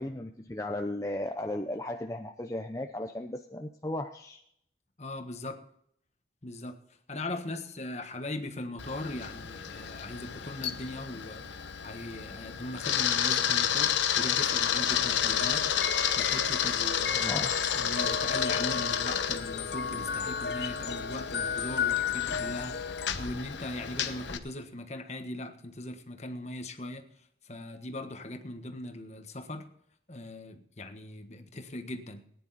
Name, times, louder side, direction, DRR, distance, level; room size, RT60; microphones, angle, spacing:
voice 1, 0.0-4.4 17.1-17.6, left 1 dB, 15° left, 0.7 m, -35 dB
voice 2, 5.0-5.6 6.4-6.8 7.1-11.4 11.8-15.7 16.2-17.3 17.7-27.0 27.4-29.7 30.1-32.2, left 1 dB, 35° left, 1.4 m, -39 dB
Camera, 8.8-24.4, left 9 dB, 80° left, 1.1 m, -31 dB
sound 1, 14.9-23.1, left 6 dB, 60° left, 0.7 m, -34 dB
19.5 x 10.0 x 4.2 m
head